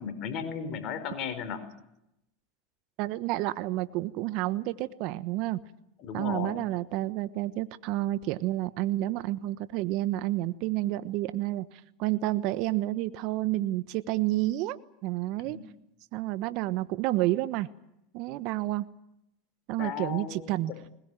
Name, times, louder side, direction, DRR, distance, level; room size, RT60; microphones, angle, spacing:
voice 1, 0.0-1.7 6.0-6.7 15.4-15.6 19.8-20.8, left 7 dB, 50° left, 9 dB, 4.5 m, -35 dB
voice 2, 3.0-5.6 6.1-11.7 12.0-15.6 16.1-17.7 18.1-18.8 19.7-20.7, right 16 dB, 60° right, 13 dB, 1.2 m, -30 dB
21.0 x 21.0 x 9.1 m, 0.82 s
hypercardioid pair, 100°, 0 cm